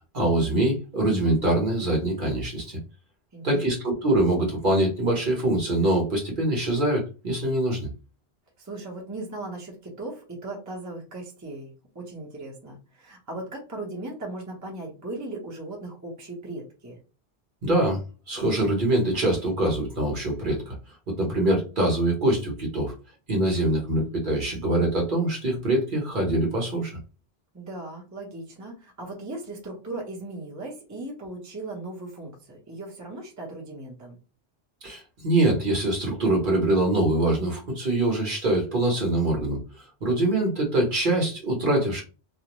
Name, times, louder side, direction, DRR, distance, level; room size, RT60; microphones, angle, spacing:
voice 1, 0.1-2.8 3.4-7.9 17.6-20.7 21.1-22.9 23.3-26.9 34.8-42.0, right 1 dB, 50° right, -1 dB, 1.0 m, -24 dB
voice 2, 3.3-3.8 8.6-17.0 27.5-34.2, right 2 dB, 20° right, -2 dB, 0.7 m, -38 dB
2.5 x 2.0 x 2.9 m, 0.32 s
omnidirectional pair, 1.1 m